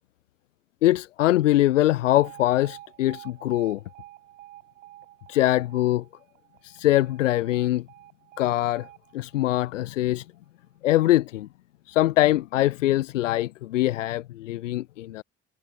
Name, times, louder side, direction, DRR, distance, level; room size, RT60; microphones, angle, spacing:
voice 1, 0.8-3.8 5.3-6.0 6.6-7.8 8.4-8.9 9.1-10.2 10.8-11.5 11.9-15.2, left 15 dB, 90° left, 0.5 m, -23 dB
Alarm, 2.2-10.3, right 15 dB, 85° right, 5.8 m, -49 dB
hypercardioid pair, 50°, 37 cm